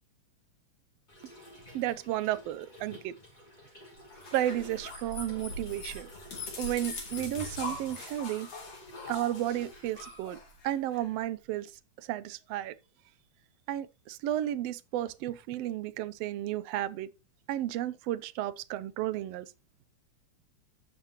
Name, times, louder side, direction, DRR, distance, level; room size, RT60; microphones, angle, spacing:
Trickle dribble / Fill (with liquid), 1.1-10.1, left 1 dB, 15° left, 2.8 m, -53 dB
voice 1, 1.7-3.1 4.3-6.1 6.6-8.5 9.1-10.4 10.6-11.7 12.0-12.7 13.7-17.1 17.5-19.5, right 13 dB, 75° right, 1.5 m, -33 dB
sound 1, 4.1-11.0, left 2 dB, 60° left, 4.0 m, -42 dB
15.0 x 5.3 x 2.9 m
omnidirectional pair, 3.4 m